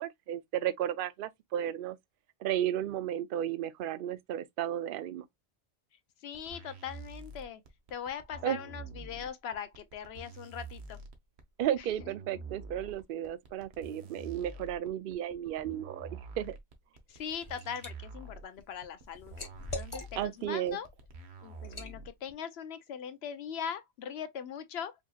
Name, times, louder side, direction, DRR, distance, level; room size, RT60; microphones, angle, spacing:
voice 1, 0.0-2.0 2.4-5.3 8.4-8.6 11.6-16.6 20.2-20.8, right 11 dB, 65° right, 0.7 m, -33 dB
voice 2, 6.2-7.6 7.9-11.0 17.1-20.9 21.4-24.9, left 8 dB, 80° left, 0.9 m, -40 dB
sound 1, 6.3-22.3, right 3 dB, 85° right, 1.1 m, -47 dB
Liquid, 17.1-17.9 18.3-20.4 20.9-21.1 21.6-22.0, left 2 dB, 30° left, 1.1 m, -43 dB
4.8 x 2.8 x 2.2 m
omnidirectional pair, 1.1 m